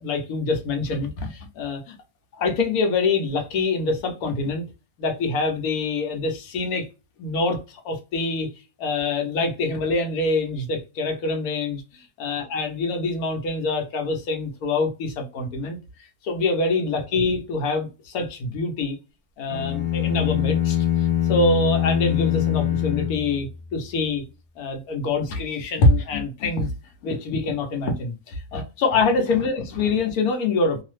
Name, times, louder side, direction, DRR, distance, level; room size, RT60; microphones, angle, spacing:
voice 1, 0.0-1.9 2.4-4.6 5.0-6.9 7.2-8.5 8.8-11.8 12.2-15.8 16.2-19.0 19.4-20.8 21.3-24.2 24.6-26.7 27.0-30.8, left 3 dB, 80° left, 1.3 m, -25 dB
sound 1, 19.5-23.9, left 11 dB, 55° left, 0.5 m, -23 dB
3.1 x 2.0 x 3.1 m
omnidirectional pair, 1.5 m